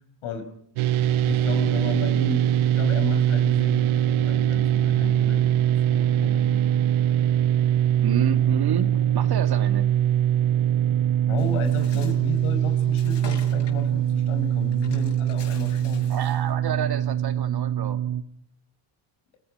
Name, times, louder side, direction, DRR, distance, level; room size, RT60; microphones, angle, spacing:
sound 1, 0.8-18.2, right 11 dB, 90° right, 1.1 m, -22 dB
voice 1, 1.3-6.8 11.3-16.1, left 4 dB, 80° left, 7 dB, 5.0 m, -34 dB
voice 2, 8.0-10.0 12.0-12.1 16.1-18.0, right 7 dB, 50° right, 9 dB, 2.3 m, -30 dB
Bird, 11.4-16.5, left 4 dB, 60° left, 8.0 m, -46 dB
30.0 x 17.5 x 5.5 m, 0.67 s
cardioid pair, 90°, 48 cm